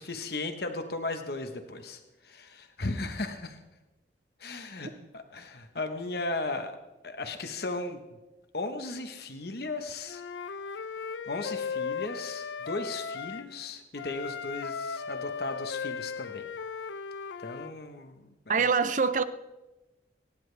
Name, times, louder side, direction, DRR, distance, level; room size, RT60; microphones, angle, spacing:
voice 1, 0.0-3.6 4.4-6.7 7.0-8.0 8.5-10.2 11.3-16.4 17.4-18.7, left 2 dB, 55° left, 1.1 m, -36 dB
Wind instrument woodwind instrument, 10.1-13.5 14.0-17.7, left 6 dB, 80° left, 0.6 m, -37 dB
voice 2, 18.5-19.2, right 5 dB, 40° right, 0.6 m, -25 dB
25.5 x 10.0 x 3.4 m
head